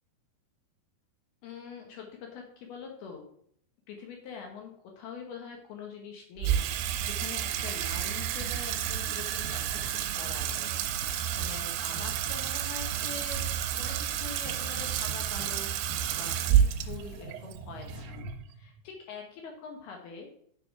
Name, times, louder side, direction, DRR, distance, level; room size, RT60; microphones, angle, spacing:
voice 1, 1.4-3.2 3.9-13.4 13.8-18.0 18.6-20.3, left 5 dB, 70° left, 1 dB, 2.5 m, -44 dB
Water tap faucet / Sink (filling or washing), 6.4-18.8, right 10 dB, 90° right, 3.3 m, -30 dB
sound 1, 7.9-9.1 9.4-10.0 10.4-11.6 11.9-12.5 12.9-14.1 14.4-15.6 15.9-18.4, right 3 dB, 65° right, 2.3 m, -44 dB
7.4 x 6.8 x 4.7 m, 0.65 s
omnidirectional pair, 5.7 m